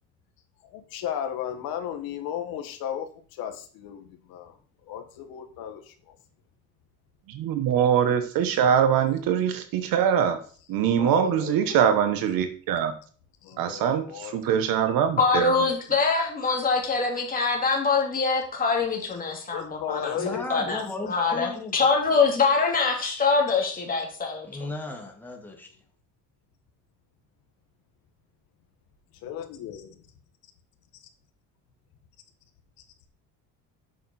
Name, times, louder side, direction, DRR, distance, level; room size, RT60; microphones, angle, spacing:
voice 1, 0.7-4.6 4.9-6.1 11.0-12.0 13.4-14.4 19.5-21.1 29.2-30.0, left 9 dB, 80° left, 6 dB, 1.6 m, -35 dB
voice 2, 7.3-10.4 10.7-12.9 13.6-15.5, right 8 dB, 75° right, 9 dB, 1.2 m, -23 dB
voice 3, 15.2-24.5, left 4 dB, 25° left, 1 dB, 2.6 m, -24 dB
voice 4, 20.2-21.8 24.4-25.7, left 2 dB, 5° left, 1 dB, 1.7 m, -35 dB
8.2 x 6.7 x 4.2 m, 0.44 s
cardioid pair, 145°, 35 cm